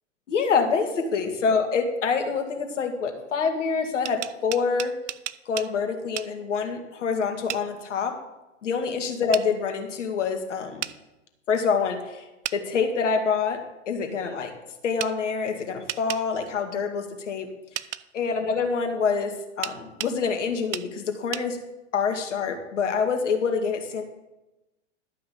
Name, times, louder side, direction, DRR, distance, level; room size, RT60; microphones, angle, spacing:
voice 1, 0.3-4.9 5.5-8.1 8.6-10.9 11.5-12.2 12.5-13.6 13.9-14.5 14.8-17.5 18.1-21.6 21.9-24.0, left 5 dB, 70° left, 5 dB, 2.0 m, -26 dB
sound 1, 3.9-5.7 6.2-6.3 7.5-7.7 9.3-9.5 10.8-11.0 12.4-12.6 15.0-15.1 15.9-16.2 17.8-18.0 19.6-20.2 20.7-20.9 21.3-21.5, right 13 dB, 65° right, 0.6 m, -33 dB
12.0 x 5.7 x 7.0 m, 1.0 s
hypercardioid pair, 105°, 38 cm